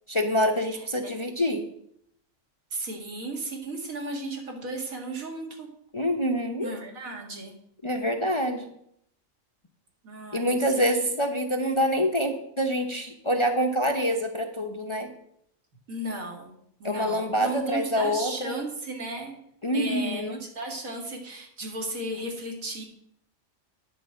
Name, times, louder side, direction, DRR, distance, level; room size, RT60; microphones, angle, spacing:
voice 1, 0.1-1.6 5.9-6.7 7.8-8.7 10.3-15.1 16.8-18.5 19.6-20.4, equal, 30° left, 4 dB, 0.6 m, -26 dB
voice 2, 0.7-1.1 2.7-5.7 6.6-7.5 10.0-10.9 15.9-16.5 16.8-19.4 19.7-22.8, right 2 dB, 80° right, 1 dB, 2.4 m, -35 dB
9.6 x 4.7 x 7.6 m, 0.72 s
omnidirectional pair, 1.4 m